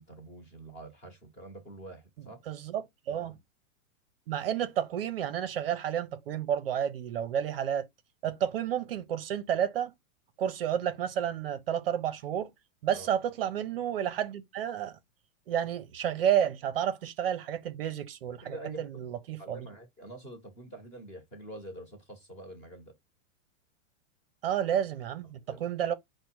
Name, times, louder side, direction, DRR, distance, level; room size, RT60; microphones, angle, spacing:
voice 1, 0.0-2.4 12.9-13.1 18.4-19.0 19.4-22.9 25.5-25.7, right 1 dB, 20° left, 1.0 m, -46 dB
voice 2, 2.5-3.3 4.3-7.9 8.2-9.9 10.4-12.5 12.8-14.9 15.5-19.6 24.4-25.9, right 9 dB, 45° right, 0.6 m, -31 dB
5.2 x 2.1 x 4.5 m
supercardioid pair, 170°, 40 cm